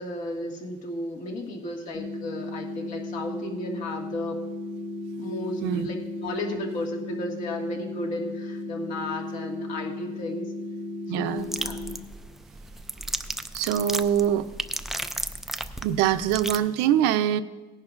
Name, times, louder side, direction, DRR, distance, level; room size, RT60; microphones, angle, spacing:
voice 1, 0.0-4.4 5.2-10.5 11.1-11.8, left 1 dB, 45° left, 0 dB, 1.8 m, -34 dB
sound 1, 1.9-12.0, left 2 dB, 30° left, 1.3 m, -35 dB
voice 2, 11.1-11.5 13.5-14.5 15.8-17.4, right 10 dB, 80° right, 11 dB, 0.6 m, -23 dB
sound 2, 11.4-16.6, right 1 dB, ahead, 0.3 m, -34 dB
18.0 x 10.5 x 2.5 m, 1.2 s
cardioid pair, 155°, 17 cm